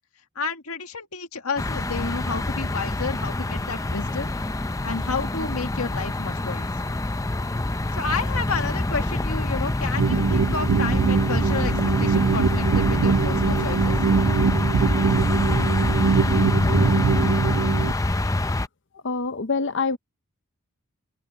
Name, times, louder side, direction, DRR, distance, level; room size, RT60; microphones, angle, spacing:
voice 1, 0.4-4.3 4.8-6.9 7.9-14.0, left 4 dB, 85° left, 2.0 m, -31 dB
sound 1, 1.6-18.7, left 2 dB, 15° left, 0.5 m, -25 dB
sound 2, 10.0-17.9, right 5 dB, 70° right, 0.4 m, -22 dB
voice 2, 19.0-20.0, left 4 dB, 55° left, 0.8 m, -25 dB
open air
head